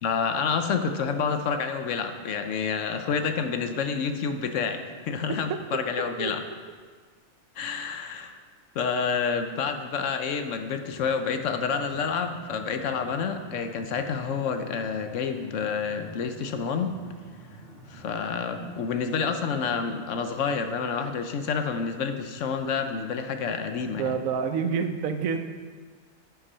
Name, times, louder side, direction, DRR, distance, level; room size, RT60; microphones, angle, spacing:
voice 1, 0.0-6.4 7.6-8.4 8.7-17.0 17.9-24.1, left 5 dB, 70° left, 7 dB, 1.0 m, -28 dB
voice 2, 6.2-6.5 24.0-25.4, right 6 dB, 80° right, 8 dB, 1.1 m, -28 dB
sound 1, 10.9-18.9, right 1 dB, ahead, 2.0 m, -48 dB
9.9 x 5.9 x 5.5 m, 1.5 s
omnidirectional pair, 1.4 m